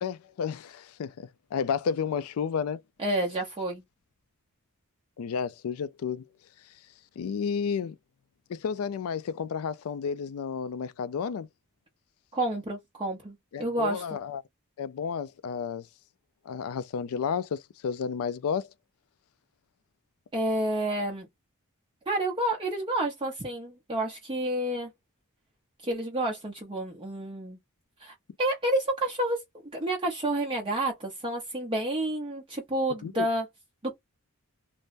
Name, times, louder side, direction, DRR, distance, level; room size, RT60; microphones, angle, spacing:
voice 1, 0.0-2.8 5.2-6.3 7.2-8.0 8.5-11.5 13.5-14.4 14.8-15.9 16.5-18.7 33.0-33.3, left 6 dB, 70° left, 0.3 m, -31 dB
voice 2, 3.0-3.8 12.3-14.0 20.3-21.3 22.1-24.9 25.8-27.6 28.0-29.4 29.7-33.4 33.8-34.0, right 1 dB, 25° right, 0.6 m, -29 dB
3.3 x 2.0 x 2.4 m
head